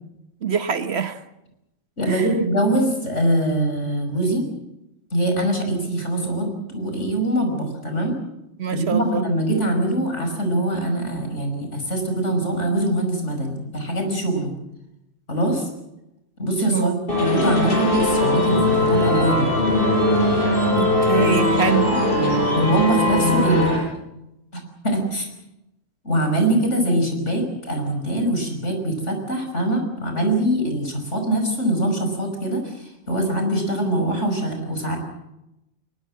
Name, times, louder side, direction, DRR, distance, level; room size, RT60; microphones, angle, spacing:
voice 1, 0.4-1.2 2.1-2.3 8.6-9.3 16.7-17.0 20.8-21.9, right 7 dB, 60° right, 1.3 m, -24 dB
voice 2, 2.0-4.4 5.1-8.1 8.7-14.5 15.3-15.7 16.4-19.5 21.9-22.0 22.5-23.8 24.5-25.3 26.0-32.7 33.1-35.0, right 1 dB, 70° left, 6.0 m, -23 dB
sound 1, 17.1-23.8, left 1 dB, 50° left, 6.8 m, -20 dB
22.0 x 21.0 x 7.6 m
omnidirectional pair, 1.3 m